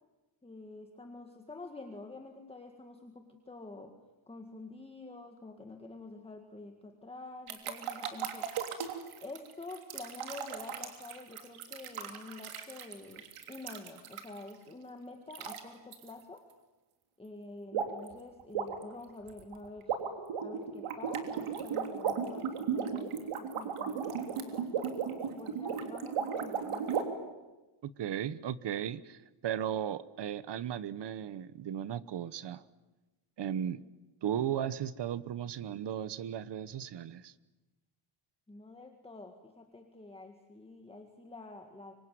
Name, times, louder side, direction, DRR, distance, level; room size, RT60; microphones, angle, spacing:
voice 1, 0.4-4.0 4.3-8.7 9.2-16.5 17.2-20.0 20.4-24.7 25.2-27.0 38.5-41.9, left 2 dB, 10° left, 4 dB, 1.9 m, -48 dB
sound 1, 7.5-14.5 15.3-15.6 15.9-16.1 17.7-18.1 18.4-27.0, right 7 dB, 90° right, 3.3 m, -36 dB
voice 2, 27.8-32.6 33.4-33.8 34.2-37.3, right 9 dB, 55° right, 16 dB, 1.2 m, -36 dB
25.5 x 25.0 x 9.3 m, 1.1 s
wide cardioid pair, 165°, 49 cm